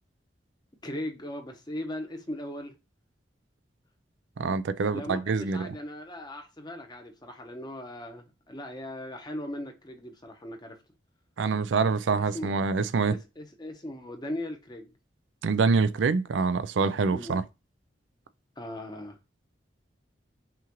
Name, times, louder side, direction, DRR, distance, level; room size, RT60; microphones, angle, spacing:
voice 1, 0.8-2.7 4.9-10.8 12.3-12.6 13.1-14.9 17.1-17.4 18.6-19.2, left 1 dB, 25° left, 0.9 m, -38 dB
voice 2, 4.4-5.7 11.4-13.2 15.4-17.4, right 4 dB, 85° right, 0.4 m, -25 dB
5.7 x 2.5 x 3.0 m
head